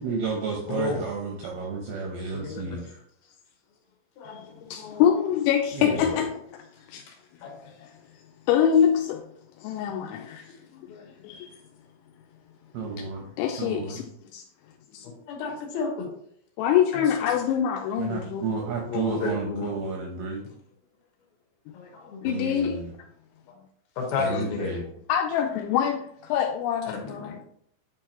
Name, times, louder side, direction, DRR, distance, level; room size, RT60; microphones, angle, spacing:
voice 1, 0.0-3.0 5.7-6.2 12.7-13.3 13.6-14.0 18.0-20.4 22.2-22.9 24.2-24.9, right 4 dB, 80° right, 2.2 m, -32 dB
voice 2, 0.7-1.0 2.3-2.8 4.2-4.4 4.8-5.1 5.9-6.1 7.1-7.2 7.4-7.5 9.6-9.7 10.3-10.5 10.9-11.1 15.0-16.1 16.9-17.3 18.9-19.7 21.7-22.3 23.5-23.6 24.0-24.7 26.9-27.4, left 4 dB, 65° left, 2.6 m, -32 dB
voice 3, 4.2-6.6 6.9-7.0 7.8-7.9 8.5-9.2 9.6-10.4 11.2-11.6 13.4-14.0 14.3-14.4 14.9-15.1 16.6-18.5 22.2-22.8 25.1-27.3, left 9 dB, 85° left, 2.8 m, -25 dB
8.9 x 4.6 x 2.9 m
omnidirectional pair, 5.5 m